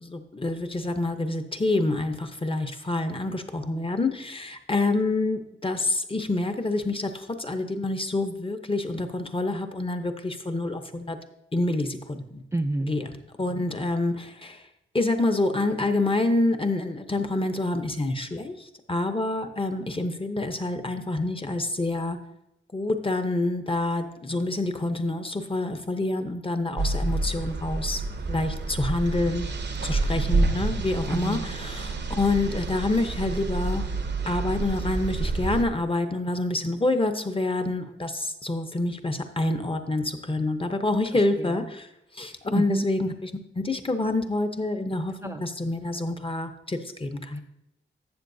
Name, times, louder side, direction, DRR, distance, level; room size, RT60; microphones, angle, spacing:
voice 1, 0.0-11.2 11.5-12.4 12.9-13.0 13.4-14.6 14.9-22.2 22.7-28.0 28.3-29.5 29.8-33.9 34.3-41.9 42.1-43.3 43.5-47.4, left 2 dB, 25° left, 7 dB, 0.7 m, -27 dB
voice 2, 12.5-12.9 31.1-31.5 41.1-41.7 42.5-42.8 45.2-45.5 47.3-47.4, right 2 dB, 15° right, 5 dB, 0.3 m, -29 dB
sound 1, 26.8-35.6, right 3 dB, 55° right, 0.7 m, -28 dB
12.5 x 7.5 x 2.7 m, 0.85 s
wide cardioid pair, 120°, 21 cm